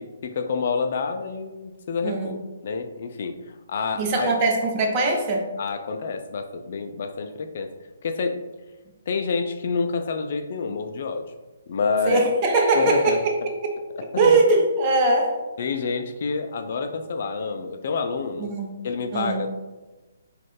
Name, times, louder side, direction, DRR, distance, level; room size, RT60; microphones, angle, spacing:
voice 1, 0.0-4.3 5.6-7.7 8.0-8.4 9.1-11.3 11.7-12.2 12.7-13.2 13.9-14.4 15.6-18.5 18.8-19.5, left 4 dB, 55° left, 7 dB, 0.3 m, -28 dB
voice 2, 2.0-2.3 4.0-5.5 12.1-13.3 14.2-15.4 18.4-18.7 19.1-19.4, right 3 dB, 30° right, 1 dB, 0.7 m, -21 dB
4.0 x 2.4 x 3.2 m, 1.2 s
figure-of-eight pair, 140°, 0 cm